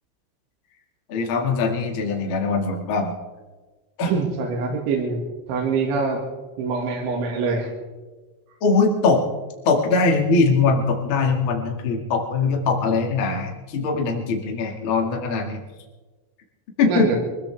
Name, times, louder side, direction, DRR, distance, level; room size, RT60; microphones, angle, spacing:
voice 1, 1.1-3.1 4.0-4.1 4.7-4.8 8.6-9.2 9.6-15.6 16.8-17.1, left 4 dB, 80° left, 1 dB, 1.1 m, -21 dB
voice 2, 4.1-5.2 5.5-6.2 6.6-7.7 16.9-17.2, right 4 dB, 70° right, -2 dB, 4.1 m, -24 dB
24.0 x 15.5 x 3.5 m, 1.3 s
omnidirectional pair, 5.9 m